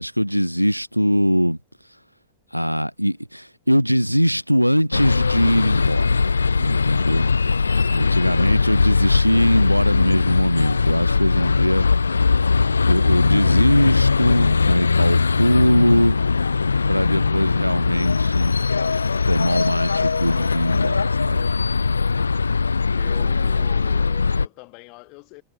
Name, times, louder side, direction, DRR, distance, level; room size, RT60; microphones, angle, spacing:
voice 1, 0.0-1.6 2.5-6.2 6.6-7.3 7.9-11.9 12.8-16.2 16.9-18.6 19.3-21.5, equal, 90° right, 0.9 m, -21 dB
sound 1, 4.9-24.5, left 4 dB, 75° left, 1.3 m, -20 dB
voice 2, 22.9-25.4, left 30 dB, 45° left, 4.8 m, -42 dB
figure-of-eight pair, 90°, 0 cm